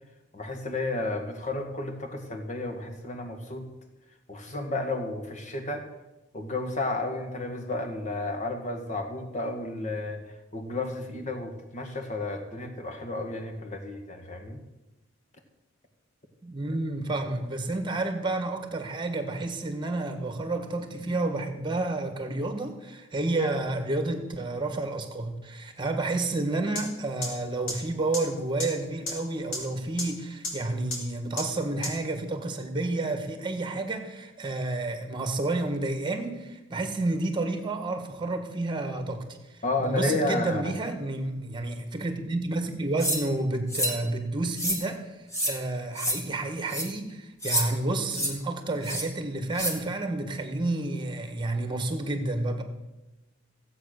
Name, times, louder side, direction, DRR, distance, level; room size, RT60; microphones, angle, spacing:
voice 1, 0.3-3.7 4.3-5.9 6.3-10.2 10.5-14.6 39.6-40.7, left 2 dB, 35° left, 5 dB, 1.8 m, -32 dB
voice 2, 16.4-45.2 45.4-52.6, right 2 dB, 25° right, 7 dB, 1.6 m, -30 dB
sound 1, 26.8-26.9 27.2-27.3 27.7-27.8 28.1-28.2 28.6-28.7 29.1-29.2 29.5-29.6 30.0-30.1 30.4-30.5 30.9-31.0 31.4-31.5 31.8-31.9, left 2 dB, 65° left, 4.0 m, -30 dB
sound 2, 43.0-43.2 43.7-44.0 44.5-44.8 45.3-45.5 46.0-46.2 46.7-46.9 47.4-47.7 48.1-48.3 48.8-49.0 49.5-49.7, equal, 15° left, 2.2 m, -28 dB
16.0 x 8.3 x 6.7 m, 1.0 s
head